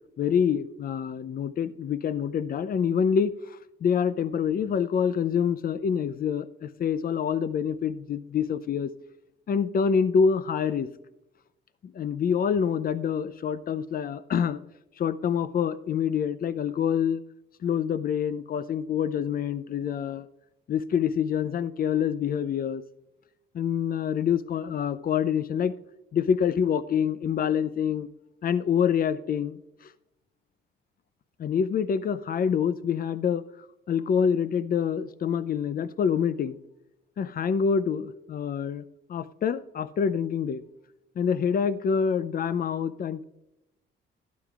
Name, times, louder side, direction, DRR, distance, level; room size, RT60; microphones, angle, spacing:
voice 1, 0.2-8.9 9.5-10.9 11.8-14.6 15.0-17.2 17.6-20.3 20.7-22.8 23.5-25.7 26.1-28.1 28.4-29.6 31.4-33.4 33.9-36.6 37.2-38.8 39.1-40.6 41.2-43.2, left 7 dB, 45° left, 15 dB, 0.5 m, -26 dB
12.0 x 9.6 x 2.4 m, 0.90 s
cardioid pair, 90°, 20 cm